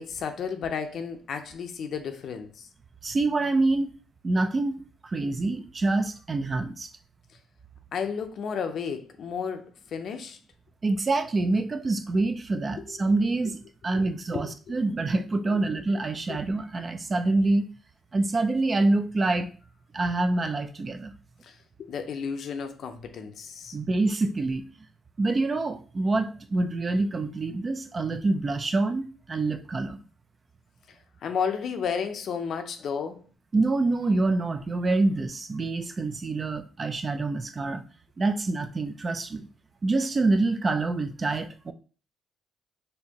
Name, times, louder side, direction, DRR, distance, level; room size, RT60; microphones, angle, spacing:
voice 1, 0.0-2.7 7.9-10.4 12.8-13.0 13.9-14.1 14.3-14.8 15.4-15.6 16.3-16.4 21.4-23.8 31.2-33.3, left 6 dB, 65° left, 0.5 m, -33 dB
voice 2, 3.0-3.9 4.2-4.8 5.0-6.9 10.8-17.7 18.1-19.5 19.9-21.1 23.7-24.6 25.2-30.0 33.5-37.8 38.2-39.5 39.8-41.7, right 2 dB, 35° right, 0.4 m, -26 dB
4.3 x 2.6 x 2.9 m
cardioid pair, 90°, 0 cm